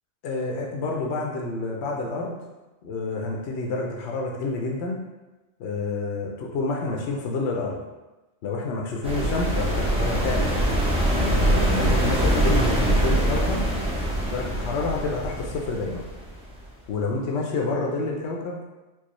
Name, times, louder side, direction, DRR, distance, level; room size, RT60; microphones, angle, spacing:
voice 1, 0.2-2.4 2.8-5.0 5.6-7.8 8.4-10.5 11.1-13.7 14.3-16.0 16.9-18.6, left 3 dB, 65° left, -1 dB, 0.8 m, -28 dB
sound 1, 9.0-16.7, right 1 dB, 10° right, 0.3 m, -23 dB
4.6 x 2.0 x 3.0 m, 1.1 s
omnidirectional pair, 1.3 m